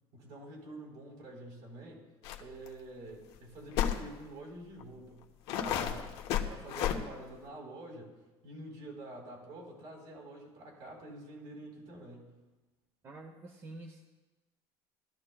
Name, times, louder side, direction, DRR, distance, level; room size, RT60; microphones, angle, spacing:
voice 1, 0.1-2.0 2.4-5.2 5.5-6.1 6.5-8.2 8.4-12.4, right 1 dB, 60° right, -2 dB, 4.0 m, -47 dB
sound 1, 2.2-2.4 2.7-2.8 3.8-4.0 4.8-4.9 5.5-7.0, left 10 dB, 65° left, 1.1 m, -31 dB
voice 2, 13.0-14.0, right 2 dB, 25° right, 3 dB, 0.9 m, -47 dB
17.5 x 13.0 x 2.3 m, 1.2 s
cardioid pair, 165°, 11 cm